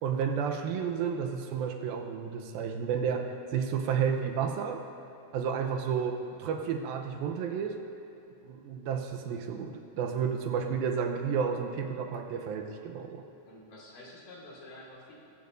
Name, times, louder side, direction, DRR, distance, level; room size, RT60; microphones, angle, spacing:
voice 1, 0.0-4.8 5.3-7.8 8.4-13.2, right 7 dB, 85° right, 4 dB, 2.6 m, -31 dB
voice 2, 13.5-15.2, left 1 dB, 65° left, -5 dB, 4.1 m, -49 dB
21.5 x 14.0 x 2.6 m, 2.9 s
omnidirectional pair, 4.3 m